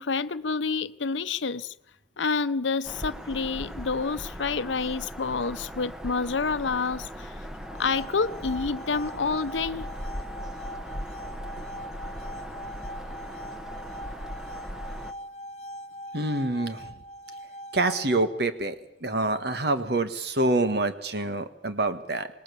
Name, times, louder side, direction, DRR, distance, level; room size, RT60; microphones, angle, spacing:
voice 1, 0.0-1.7 2.2-7.5 7.8-9.9, left 4 dB, 85° left, 15 dB, 0.8 m, -28 dB
Bird vocalization bird call bird song, 2.8-15.1, equal, 5° right, 1.2 m, -39 dB
sound 1, 7.5-18.5, equal, 35° left, 0.9 m, -42 dB
voice 2, 16.1-16.9 17.7-18.7 19.0-22.3, right 2 dB, 60° right, 10 dB, 1.7 m, -26 dB
25.5 x 20.0 x 7.1 m, 0.81 s
head